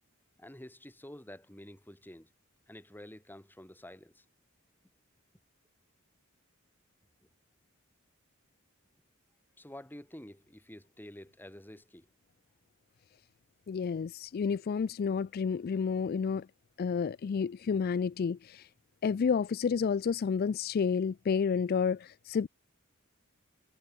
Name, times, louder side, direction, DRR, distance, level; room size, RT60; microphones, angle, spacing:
voice 1, 0.4-2.3 2.7-4.2 9.6-12.1, left 1 dB, 10° left, 2.5 m, -49 dB
voice 2, 13.7-16.5 16.8-18.7 19.0-22.5, left 6 dB, 50° left, 0.3 m, -30 dB
head